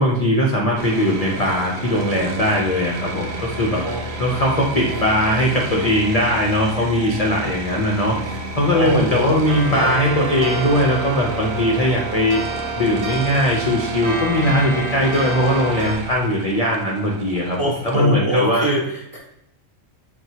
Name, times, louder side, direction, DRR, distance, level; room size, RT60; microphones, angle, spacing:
voice 1, 0.0-3.8 4.2-12.4 12.8-17.6 17.8-18.6, left 1 dB, 55° left, -2 dB, 0.4 m, -20 dB
sound 1, 0.8-18.0, right 2 dB, 60° right, 0.6 m, -31 dB
voice 2, 3.8-4.1 4.7-5.0 5.4-5.5 6.8-6.9 8.7-9.4 9.7-9.9 17.6-19.2, right 1 dB, 20° right, -3 dB, 0.6 m, -24 dB
sound 2, 9.5-16.0, right 3 dB, 80° right, 1.2 m, -28 dB
6.1 x 2.2 x 2.7 m, 0.82 s
omnidirectional pair, 1.4 m